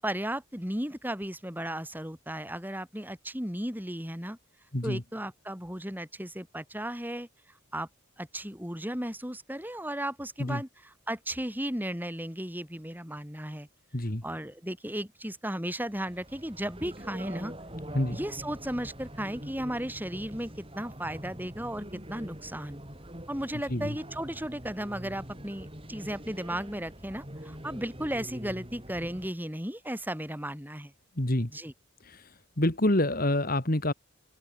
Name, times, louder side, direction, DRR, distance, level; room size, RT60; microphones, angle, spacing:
voice 1, 0.0-4.4 4.8-7.3 7.7-7.9 8.2-10.7 11.1-13.7 14.2-17.5 18.1-22.8 23.3-30.9 31.5-31.7, right 1 dB, 10° right, 7.6 m, -35 dB
voice 2, 4.7-5.0 10.4-10.6 13.9-14.2 17.9-18.2 23.7-24.0 31.2-31.5 32.0-33.9, left 1 dB, 40° left, 2.3 m, -27 dB
sound 1, 15.8-29.3, equal, 25° right, 8.0 m, -44 dB
open air
head